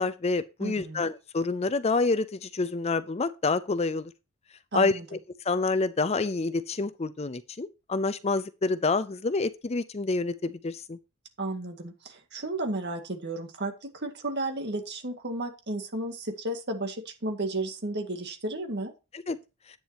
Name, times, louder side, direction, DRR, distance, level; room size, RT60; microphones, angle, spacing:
voice 1, 0.0-4.1 4.7-5.2 5.5-11.0 19.1-19.4, left 3 dB, 30° left, 0.5 m, -28 dB
voice 2, 0.6-1.1 4.7-5.1 11.4-18.9, right 2 dB, 50° right, 1.9 m, -33 dB
10.5 x 9.0 x 2.8 m
head